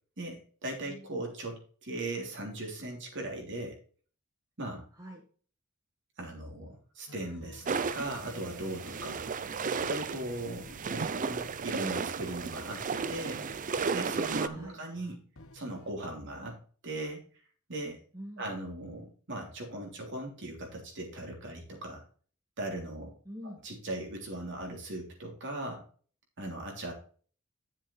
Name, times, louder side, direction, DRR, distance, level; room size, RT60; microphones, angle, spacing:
voice 1, 0.2-3.8 4.6-4.8 6.2-9.2 9.8-13.5 13.9-15.2 15.5-16.6 16.8-17.2 17.7-18.0 18.4-22.0 22.6-23.1 23.6-25.8 26.4-26.9, right 1 dB, 55° right, 1 dB, 3.3 m, -39 dB
voice 2, 4.9-5.2 9.5-9.7 14.5-14.8 18.1-18.5 23.2-23.6, equal, 15° right, 0 dB, 1.4 m, -45 dB
sound 1, 7.1-15.9, left 1 dB, 70° left, 1.2 m, -54 dB
sound 2, 7.6-14.5, right 5 dB, 35° right, 0.5 m, -34 dB
10.5 x 7.4 x 3.3 m, 0.42 s
head